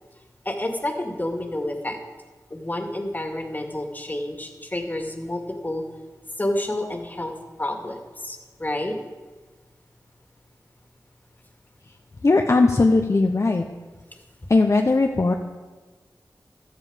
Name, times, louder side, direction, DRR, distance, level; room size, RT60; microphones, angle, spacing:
voice 1, 0.5-2.0 2.5-5.9 6.4-7.3 7.6-9.0, left 1 dB, 25° left, 4 dB, 2.2 m, -29 dB
voice 2, 12.2-13.6 14.5-15.3, left 3 dB, 45° left, 3 dB, 1.0 m, -18 dB
16.0 x 12.5 x 5.2 m, 1.3 s
wide cardioid pair, 65°, 7 cm